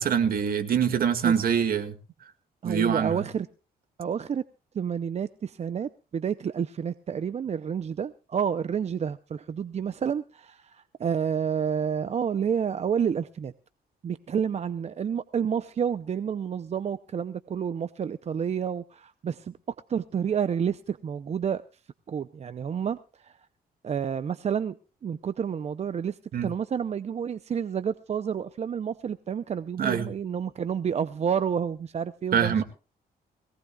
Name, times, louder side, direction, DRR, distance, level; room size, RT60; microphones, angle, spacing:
voice 1, 0.0-2.0 2.6-3.2 26.3-26.5 29.8-30.1 32.3-32.6, right 7 dB, 60° right, 8 dB, 2.0 m, -24 dB
voice 2, 2.6-3.5 4.0-4.4 4.7-13.5 14.0-19.6 19.9-21.6 22.1-23.4 23.8-24.8 25.0-32.6, right 7 dB, 40° right, 13 dB, 0.6 m, -29 dB
21.5 x 18.0 x 2.4 m, 0.33 s
cardioid pair, 105°, 17 cm